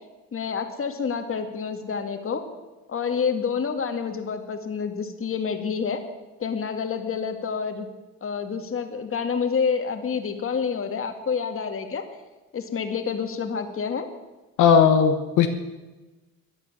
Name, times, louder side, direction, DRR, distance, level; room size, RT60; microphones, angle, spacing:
voice 1, 0.3-2.4 2.9-6.0 6.4-7.9 8.2-12.0 12.5-14.1, left 6 dB, 45° left, 6 dB, 2.1 m, -28 dB
voice 2, 14.6-15.5, left 7 dB, 85° left, 5 dB, 1.3 m, -17 dB
14.5 x 9.8 x 9.0 m, 1.2 s
cardioid pair, 90°, 30 cm